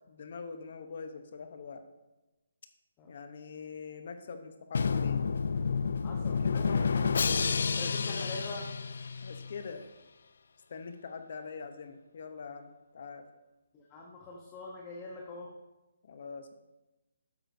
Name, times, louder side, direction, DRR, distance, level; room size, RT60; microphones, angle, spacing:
voice 1, 0.1-1.8 3.1-5.3 6.4-6.7 7.7-8.3 9.2-9.8 10.7-13.3 16.0-16.5, left 5 dB, 50° left, 8 dB, 0.7 m, -44 dB
Drum, 4.8-9.6, left 5 dB, 65° left, 0.3 m, -30 dB
voice 2, 6.0-7.0 7.7-8.7 13.7-15.5, left 2 dB, 20° left, -2 dB, 0.8 m, -44 dB
8.6 x 7.9 x 2.6 m, 1.0 s
hypercardioid pair, 160°, 0 cm